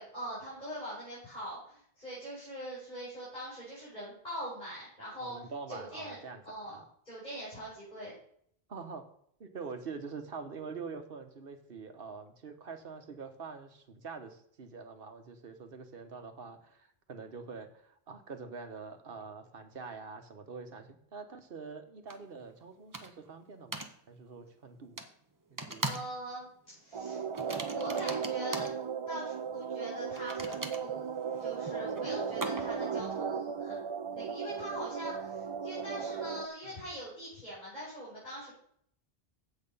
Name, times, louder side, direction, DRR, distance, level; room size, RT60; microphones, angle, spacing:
voice 1, 0.0-6.2 6.4-6.8 7.0-8.1 25.9-27.2 27.7-28.7 29.1-31.1 31.4-33.8 34.1-38.5, right 1 dB, 45° left, -9 dB, 5.6 m, -43 dB
voice 2, 5.2-6.8 8.7-9.1 9.4-25.0 25.5-25.9 31.7-32.2 36.6-36.8, right 5 dB, 65° right, 7 dB, 1.3 m, -45 dB
sound 1, 22.1-22.2 22.9-23.3 23.7-23.9 25.0-25.1 25.6-26.2 26.4-26.7 27.3-28.8 30.1-32.9, right 2 dB, 20° right, 0.9 m, -40 dB
sound 2, 26.9-36.5, right 6 dB, 45° right, 0.4 m, -36 dB
8.8 x 7.9 x 5.4 m, 0.66 s
omnidirectional pair, 1.0 m